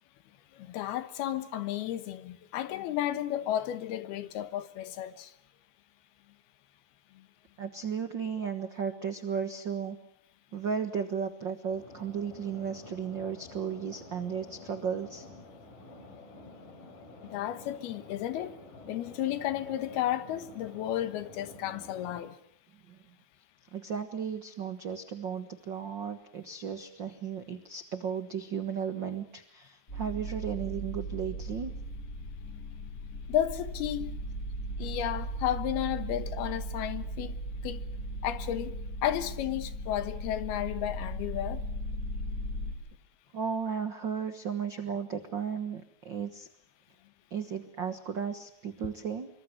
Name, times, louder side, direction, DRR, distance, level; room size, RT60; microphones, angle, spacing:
voice 1, 0.6-5.3 17.2-18.5 18.9-22.4 33.3-34.1 34.8-37.4 37.6-37.8 38.2-38.7 39.0-41.6, left 12 dB, 85° left, 3.2 m, -33 dB
voice 2, 7.6-10.0 10.5-15.3 22.9-23.0 23.7-31.7 43.3-46.5 47.3-49.3, right 7 dB, 75° right, 1.0 m, -35 dB
sound 1, 11.7-22.2, left 2 dB, 60° left, 7.3 m, -50 dB
sound 2, 29.9-42.7, right 1 dB, 20° left, 8.2 m, -37 dB
25.5 x 24.0 x 7.9 m
omnidirectional pair, 4.4 m